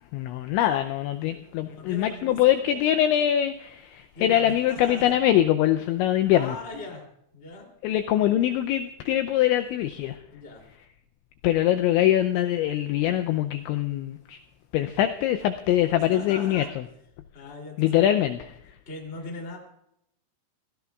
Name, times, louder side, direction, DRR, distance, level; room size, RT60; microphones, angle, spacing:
voice 1, 0.1-6.6 7.8-10.2 11.4-14.4 14.7-16.8 17.8-18.4, left 12 dB, 85° left, 8 dB, 2.6 m, -23 dB
voice 2, 1.8-3.0 4.1-5.1 6.3-7.0 7.3-7.7 10.3-10.6 16.0-16.7 17.3-18.2 18.9-19.6, left 3 dB, 20° left, 0 dB, 1.8 m, -39 dB
26.0 x 16.5 x 2.4 m, 0.79 s
omnidirectional pair, 5.9 m